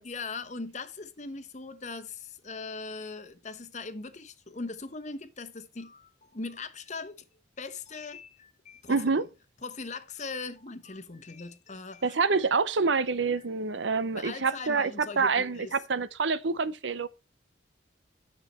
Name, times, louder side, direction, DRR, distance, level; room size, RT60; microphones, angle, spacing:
voice 1, 0.0-7.2 7.6-9.1 9.6-12.2 12.5-12.6 13.4-13.5 14.1-15.7, left 3 dB, 40° left, 1.0 m, -40 dB
voice 2, 8.9-9.2 12.0-14.9 15.2-17.1, right 4 dB, 75° right, 0.7 m, -27 dB
10.0 x 6.7 x 4.3 m
head